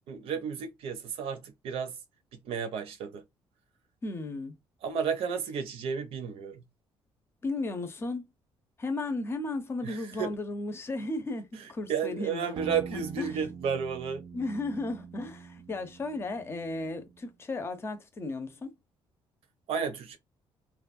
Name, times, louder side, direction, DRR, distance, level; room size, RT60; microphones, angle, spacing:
voice 1, 0.1-1.9 2.4-3.2 4.8-6.6 9.8-10.3 11.9-14.2 19.7-20.2, right 6 dB, 80° right, 0.7 m, -32 dB
voice 2, 4.0-4.6 7.4-8.3 8.8-13.4 14.3-18.8, left 2 dB, 25° left, 0.6 m, -35 dB
sound 1, 12.6-17.2, right 6 dB, 40° right, 0.5 m, -45 dB
3.0 x 2.3 x 2.5 m
cardioid pair, 145°, 10 cm